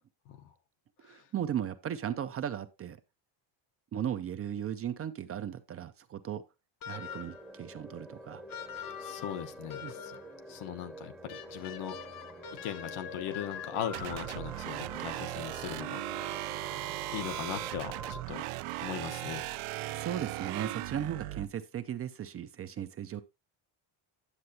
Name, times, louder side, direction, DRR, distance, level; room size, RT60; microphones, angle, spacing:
voice 1, 1.0-3.0 3.9-6.4 6.9-8.4 9.8-9.9 19.9-23.2, right 10 dB, 30° right, 0.4 m, -36 dB
sound 1, 6.8-7.5 8.5-10.3 11.3-14.5, left 9 dB, 45° left, 0.8 m, -44 dB
sound 2, 6.9-18.2, right 1 dB, ahead, 0.7 m, -47 dB
voice 2, 8.8-10.2 10.5-12.0 12.6-16.0 16.3-16.7 17.1-18.5 18.8-19.5, left 10 dB, 90° left, 1.3 m, -39 dB
sound 3, 13.9-21.5, right 17 dB, 85° right, 0.6 m, -38 dB
9.6 x 7.6 x 2.8 m
cardioid pair, 175°, 48 cm